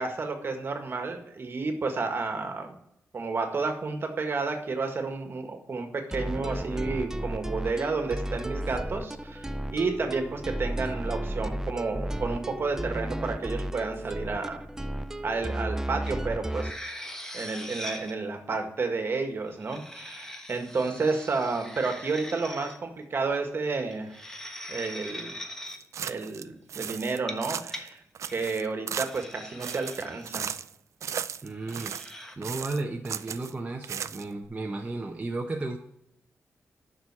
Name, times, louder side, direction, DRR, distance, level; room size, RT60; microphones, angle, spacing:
voice 1, 0.0-2.7 3.1-14.6 15.2-16.7 17.3-24.2 24.7-25.3 26.0-28.0 28.3-30.5, right 4 dB, 50° right, 5 dB, 1.7 m, -31 dB
sound 1, 6.1-16.8, right 1 dB, 10° right, 0.4 m, -33 dB
sound 2, 16.1-16.2 16.5-18.1 19.5-22.8 23.9-25.8 27.1-27.8 28.2-28.5 29.0-30.6 31.6-32.4, equal, 10° left, 1.2 m, -41 dB
sound 3, 25.7-26.4 26.7-27.9 28.1-29.3 29.6-30.7 31.0-32.1 32.4-33.5 33.8-34.5, right 8 dB, 80° right, 0.4 m, -36 dB
voice 2, 31.4-31.9 32.4-35.8, right 2 dB, 25° right, 0 dB, 0.9 m, -34 dB
10.0 x 6.3 x 4.8 m, 0.77 s
wide cardioid pair, 115°, 5 cm